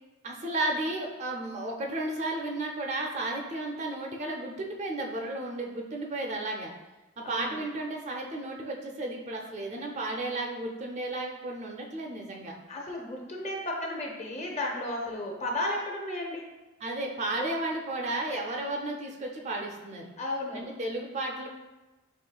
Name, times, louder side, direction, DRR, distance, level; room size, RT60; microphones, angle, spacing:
voice 1, 0.2-6.7 7.2-12.5 16.8-20.1 20.5-21.5, right 2 dB, 35° right, 1 dB, 0.4 m, -33 dB
voice 2, 7.2-7.6 12.7-16.5 18.3-18.4 20.2-20.7, left 1 dB, 35° left, 0 dB, 0.7 m, -34 dB
5.4 x 3.1 x 2.3 m, 1.1 s
head